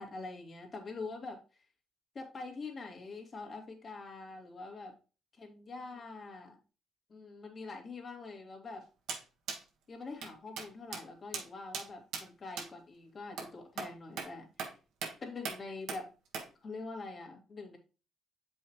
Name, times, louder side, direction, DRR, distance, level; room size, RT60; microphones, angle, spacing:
voice 1, 0.0-1.4 2.1-4.9 5.4-6.6 7.1-8.9 9.9-14.5 15.2-16.1 16.6-17.8, left 3 dB, 45° left, 2 dB, 2.1 m, -44 dB
sound 1, 9.1-9.2 9.5-9.6 10.2-10.3 10.6-10.7 10.9-11.0 11.3-11.5 11.7-11.9 12.1-12.2 12.6-12.7 13.4-13.5 13.8-13.9 14.2-14.3 14.6-14.7 15.0-15.1 15.4-15.6 15.9-16.0 16.3-16.5, right 5 dB, 85° right, 1.3 m, -38 dB
7.6 x 5.5 x 3.0 m, 0.32 s
cardioid pair, 90°, 0 cm